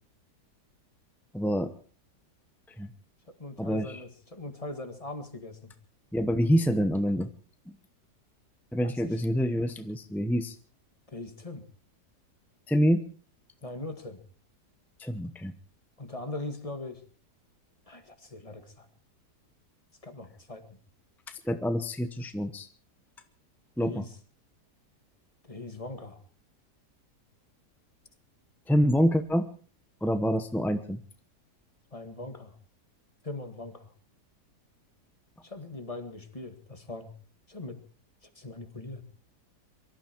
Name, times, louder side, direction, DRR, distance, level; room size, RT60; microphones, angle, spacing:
voice 1, 1.3-1.7 2.8-2.9 3.6-4.0 6.1-7.3 7.7-7.8 8.7-10.6 12.7-13.0 15.0-15.5 21.3-22.7 23.8-24.0 28.7-29.5 30.0-31.0, equal, ahead, 8 dB, 0.4 m, -26 dB
voice 2, 3.4-5.7 11.1-11.6 13.6-14.2 16.0-17.0 17.9-18.9 20.0-20.6 23.8-24.1 25.5-26.2 31.9-32.5 33.2-33.9 35.4-37.1 37.5-37.8 38.4-39.0, left 2 dB, 20° left, 7 dB, 1.8 m, -40 dB
23.5 x 13.5 x 4.5 m, 0.41 s
omnidirectional pair, 1.8 m